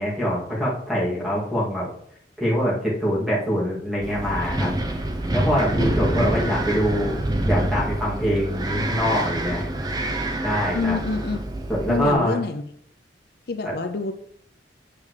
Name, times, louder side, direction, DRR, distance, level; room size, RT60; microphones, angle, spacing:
voice 1, 0.0-1.9 2.4-4.7 5.3-7.1 7.4-9.7 10.4-11.0 11.7-12.4, equal, ahead, -6 dB, 2.5 m, -24 dB
Wind, 4.0-12.1, right 1 dB, 20° right, 0.6 m, -26 dB
voice 2, 10.7-11.4 11.9-12.6 13.5-14.1, left 4 dB, 55° left, 7 dB, 0.5 m, -26 dB
8.7 x 7.1 x 3.3 m, 0.68 s
head